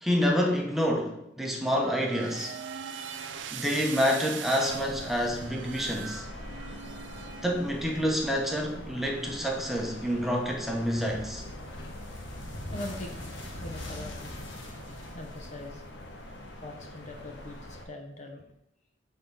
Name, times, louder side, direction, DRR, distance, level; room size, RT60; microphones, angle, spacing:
voice 1, 0.0-2.5 3.5-6.2 7.4-11.4, equal, ahead, 0 dB, 0.9 m, -28 dB
wierd sound, 1.8-7.8, right 7 dB, 80° right, 0.5 m, -41 dB
sound 1, 4.7-17.9, left 1 dB, 70° left, 1.0 m, -44 dB
sound 2, 11.0-16.1, left 1 dB, 90° left, 1.2 m, -42 dB
voice 2, 12.7-13.2 13.6-14.3 15.1-15.8 16.6-18.5, left 1 dB, 40° left, 3 dB, 0.7 m, -41 dB
6.7 x 3.8 x 5.3 m, 0.80 s
head